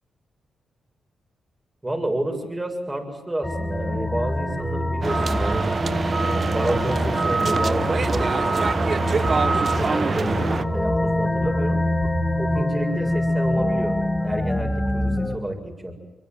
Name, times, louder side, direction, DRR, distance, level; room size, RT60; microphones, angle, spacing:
voice 1, 1.8-5.7 6.2-8.4 8.9-11.8 12.4-14.0 14.2-15.9, right 1 dB, 20° right, 4 dB, 7.6 m, -30 dB
sound 1, 3.4-15.4, left 1 dB, 15° left, 2.5 m, -25 dB
sound 2, 5.0-10.6, right 4 dB, 50° right, 1.1 m, -24 dB
25.0 x 23.0 x 9.6 m, 1.1 s
supercardioid pair, 55°, 0 cm